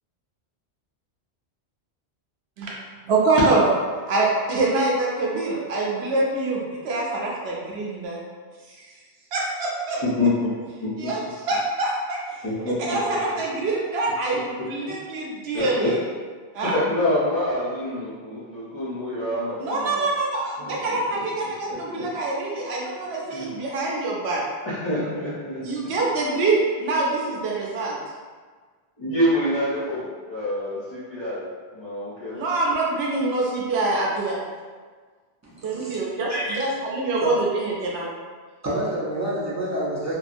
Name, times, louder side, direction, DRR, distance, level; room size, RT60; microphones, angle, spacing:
voice 1, 3.0-3.6 4.1-8.2 8.7-8.9 9.3-10.0 11.0-11.2 11.5-12.4 12.8-15.9 16.5-16.8 19.6-24.4 25.6-28.0 32.3-34.4 35.6-38.1, right 2 dB, 75° right, -3 dB, 0.9 m, -25 dB
voice 2, 12.4-12.7 15.5-15.9 16.7-19.9 20.6-21.2 21.7-22.0 23.3-23.4 24.7-25.6 29.0-31.4 31.7-32.4, left 1 dB, 30° left, -12 dB, 0.6 m, -26 dB
voice 3, 35.4-36.0 36.3-36.6 37.2-37.3 38.6-40.1, right 1 dB, 20° right, -9 dB, 0.5 m, -28 dB
2.7 x 2.3 x 2.4 m, 1.5 s
omnidirectional pair, 1.1 m